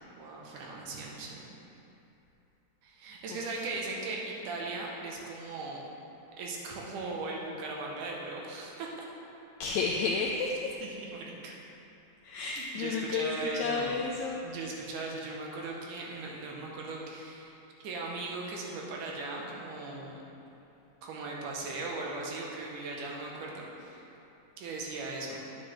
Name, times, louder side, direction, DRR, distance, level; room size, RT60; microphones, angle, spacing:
voice 1, 0.2-1.5 2.8-5.8 6.4-9.1 11.0-11.5 12.8-13.9 14.4-17.6 17.8-20.2 21.0-24.1 24.6-25.5, right 3 dB, 80° right, -2 dB, 2.5 m, -38 dB
voice 2, 3.3-3.7 9.6-10.9 12.2-14.5, left 4 dB, 85° left, 0 dB, 1.6 m, -32 dB
9.0 x 8.8 x 3.3 m, 2.9 s
omnidirectional pair, 3.7 m